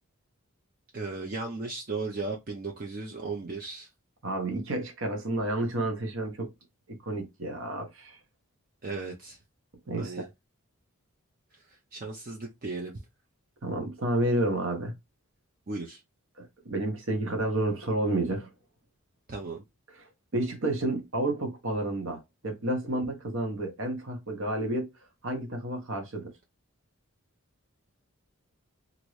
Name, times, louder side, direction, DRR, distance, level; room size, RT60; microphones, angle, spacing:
voice 1, 0.9-3.9 8.8-9.4 10.0-10.3 11.5-12.9 15.7-16.0 19.3-19.6, right 3 dB, 40° right, 0.5 m, -36 dB
voice 2, 4.2-6.5 6.9-8.2 9.9-10.3 13.6-14.9 16.4-18.5 20.3-24.9 25.2-26.3, right 1 dB, 60° right, 0.9 m, -30 dB
2.9 x 2.6 x 3.1 m
head